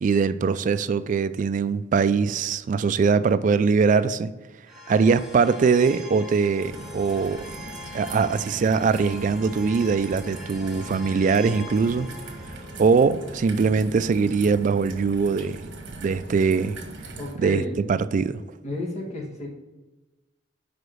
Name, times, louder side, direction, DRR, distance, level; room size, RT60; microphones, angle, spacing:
voice 1, 0.0-4.3 4.9-7.4 7.9-12.1 12.8-15.6 16.0-16.8 17.4-17.6 17.9-18.4, right 5 dB, 45° right, 0.3 m, -22 dB
sound 1, 4.7-15.7, left 1 dB, ahead, 0.8 m, -43 dB
Raindrop / Trickle dribble, 6.6-17.3, right 2 dB, 85° right, 1.2 m, -40 dB
voice 2, 17.2-17.8 18.6-19.5, left 1 dB, 40° left, 1.5 m, -31 dB
5.0 x 4.8 x 6.2 m
head